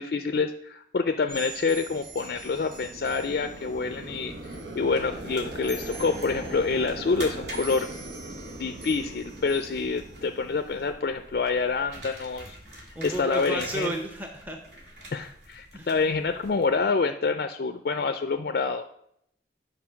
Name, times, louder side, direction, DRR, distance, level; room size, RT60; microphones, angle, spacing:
voice 1, 0.0-7.9 8.6-13.9 15.1-18.9, left 4 dB, 55° left, 8 dB, 0.4 m, -27 dB
sound 1, 1.3-10.9, right 4 dB, 50° right, 3.9 m, -46 dB
sound 2, 1.5-11.2, right 2 dB, 90° right, 1.0 m, -40 dB
sound 3, 4.9-16.9, right 1 dB, 70° right, 2.0 m, -46 dB
voice 2, 13.0-14.6 15.7-15.9, right 1 dB, 10° right, 3 dB, 0.6 m, -33 dB
9.7 x 4.3 x 5.7 m, 0.73 s
head